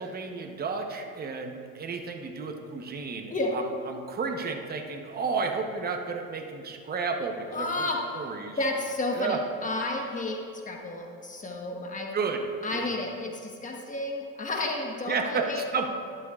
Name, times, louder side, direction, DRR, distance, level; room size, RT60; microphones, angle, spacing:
voice 1, 0.0-3.6 3.9-7.9 8.1-8.6 9.2-9.4 12.1-12.4 12.7-12.9 15.1-15.9, right 5 dB, 30° right, 4 dB, 0.9 m, -32 dB
voice 2, 7.5-8.2 8.6-10.4 10.6-12.1 12.6-15.6, left 2 dB, 25° left, 1 dB, 1.3 m, -31 dB
12.0 x 11.5 x 2.4 m, 2.2 s
cardioid pair, 110°, 30 cm